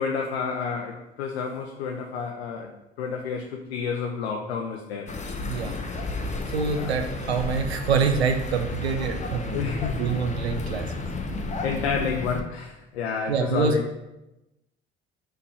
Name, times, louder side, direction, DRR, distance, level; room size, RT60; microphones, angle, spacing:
voice 1, 0.0-2.7 3.0-5.1 6.8-6.9 9.5-10.0 11.6-14.0, left 6 dB, 75° left, 2 dB, 0.6 m, -30 dB
sound 1, 5.1-12.4, left 2 dB, 20° left, 0.8 m, -32 dB
voice 2, 5.5-5.8 6.5-10.9 13.3-13.8, right 5 dB, 80° right, 6 dB, 0.7 m, -26 dB
5.8 x 3.4 x 5.4 m, 0.93 s
figure-of-eight pair, 55°, 32 cm